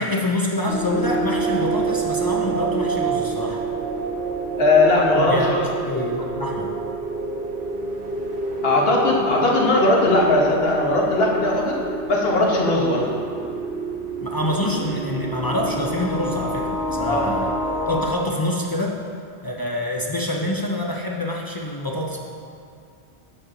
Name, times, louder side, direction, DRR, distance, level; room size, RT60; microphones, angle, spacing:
voice 1, 0.0-3.6 5.3-5.5 5.9-6.7 14.2-17.5 17.9-19.0 19.4-22.2, left 1 dB, 30° left, -1 dB, 0.4 m, -26 dB
sound 1, 0.7-18.1, right 3 dB, 70° right, 1.7 m, -27 dB
voice 2, 4.6-5.6 8.6-11.8 12.1-13.1 17.1-17.3, left 2 dB, 60° left, -2 dB, 1.4 m, -19 dB
8.5 x 6.6 x 3.7 m, 2.3 s
omnidirectional pair, 1.2 m